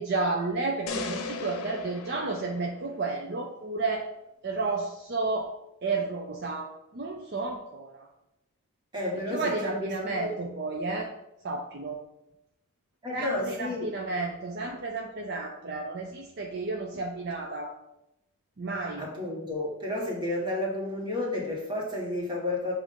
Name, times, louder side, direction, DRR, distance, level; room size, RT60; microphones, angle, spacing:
voice 1, 0.0-4.0 4.4-5.5 5.8-7.9 9.3-11.1 11.4-12.0 13.1-17.7 18.6-19.1, right 3 dB, 50° right, 1 dB, 0.5 m, -32 dB
sound 1, 0.9-3.2, left 3 dB, 80° left, 0.7 m, -37 dB
voice 2, 8.9-10.4 13.0-14.0 19.0-22.7, left 1 dB, 20° right, -3 dB, 1.5 m, -31 dB
7.2 x 2.7 x 5.2 m, 0.86 s
head